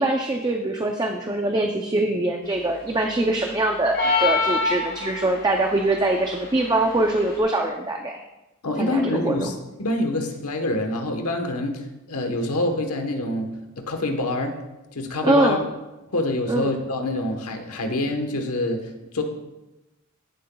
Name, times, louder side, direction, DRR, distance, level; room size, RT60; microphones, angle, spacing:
voice 1, 0.0-8.2 8.8-9.4 15.2-15.6 16.5-16.7, right 2 dB, 20° right, 3 dB, 0.5 m, -23 dB
sound 1, 3.9-5.4, left 4 dB, 45° left, 2.7 m, -22 dB
voice 2, 8.6-9.5 9.8-13.5 13.8-14.6 14.9-15.6 16.1-19.2, left 2 dB, 85° left, 5 dB, 1.2 m, -26 dB
15.0 x 7.9 x 2.3 m, 1.0 s
head